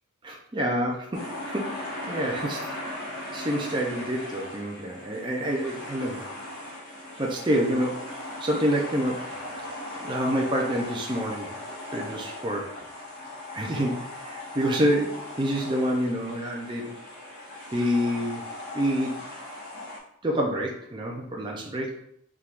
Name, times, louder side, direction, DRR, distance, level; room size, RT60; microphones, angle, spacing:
voice 1, 0.2-2.7 3.3-6.3 7.2-8.1 8.4-9.3 10.0-11.6 11.9-12.7 13.5-16.9 17.7-19.3 19.8-19.9 20.2-22.0, equal, 20° right, -1 dB, 0.5 m, -28 dB
sound 1, 1.1-20.0, left 1 dB, 55° left, 1.5 m, -38 dB
4.4 x 3.5 x 2.5 m, 0.69 s
head